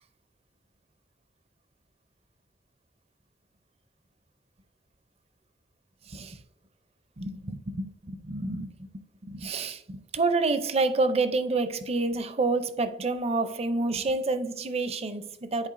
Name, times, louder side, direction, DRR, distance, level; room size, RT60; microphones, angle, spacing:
voice 1, 6.1-6.4 7.2-8.9 9.2-15.7, right 3 dB, 35° right, 0.5 m, -28 dB
10.5 x 4.3 x 2.5 m
head